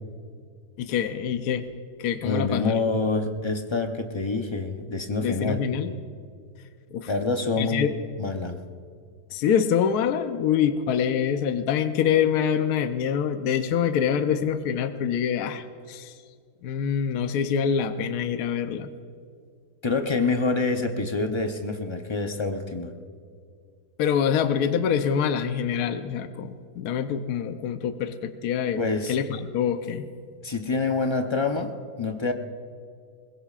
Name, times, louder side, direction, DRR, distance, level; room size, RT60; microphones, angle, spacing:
voice 1, 0.8-1.6 2.0-2.7 5.2-5.9 6.9-7.1 7.6-7.9 9.3-16.1 16.6-18.9 24.0-28.8 29.1-30.1, left 8 dB, 70° left, 9 dB, 1.2 m, -25 dB
voice 2, 2.2-5.6 7.1-7.9 8.2-8.6 19.8-22.9 28.7-29.2 30.4-31.7 32.0-32.3, left 3 dB, 40° left, 5 dB, 0.4 m, -26 dB
21.5 x 21.0 x 2.4 m, 2.2 s
omnidirectional pair, 1.8 m